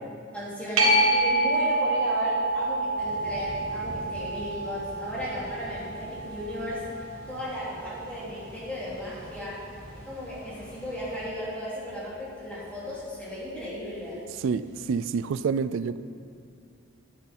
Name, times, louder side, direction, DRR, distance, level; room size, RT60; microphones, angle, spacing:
voice 1, 0.3-6.9 7.3-9.7 9.9-14.2, left 1 dB, 5° left, -9 dB, 2.8 m, -35 dB
sound 1, 0.8-7.9 13.5-13.6, right 1 dB, 85° right, 1.8 m, -27 dB
sound 2, 3.0-11.3, equal, 40° right, 2.9 m, -45 dB
voice 2, 14.4-16.0, right 5 dB, 65° right, 14 dB, 0.3 m, -28 dB
10.5 x 10.5 x 4.3 m, 2.3 s
head